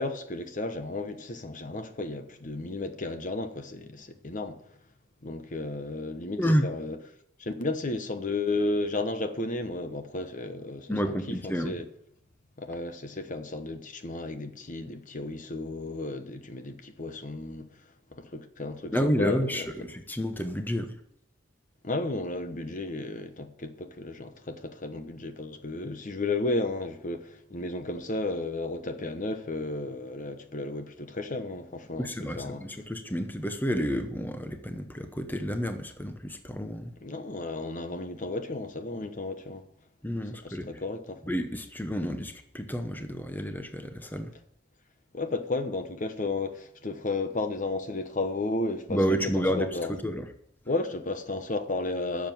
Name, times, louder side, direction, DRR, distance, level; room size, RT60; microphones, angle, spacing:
voice 1, 0.0-4.6 5.2-7.0 7.4-11.9 12.6-17.8 18.1-19.7 21.8-32.6 37.0-39.6 40.4-41.2 45.1-49.9 50.7-52.3, left 2 dB, 40° left, 1.0 m, -33 dB
voice 2, 10.9-11.7 18.9-20.9 32.0-36.9 40.0-40.7 41.3-44.3 48.9-50.2, equal, 10° left, 0.9 m, -30 dB
10.5 x 7.2 x 9.3 m
head